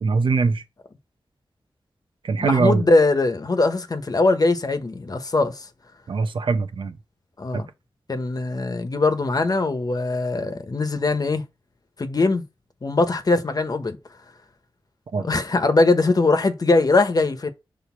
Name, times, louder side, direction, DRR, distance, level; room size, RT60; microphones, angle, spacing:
voice 1, 0.0-0.6 2.2-2.8 6.1-6.9 7.5-7.6 15.1-15.3, right 4 dB, 80° right, 0.9 m, -22 dB
voice 2, 2.4-5.7 7.4-7.7 8.1-11.4 12.0-12.4 12.8-14.0 15.2-17.5, left 3 dB, 45° left, 1.2 m, -21 dB
6.3 x 3.4 x 5.8 m
cardioid pair, 60°, 9 cm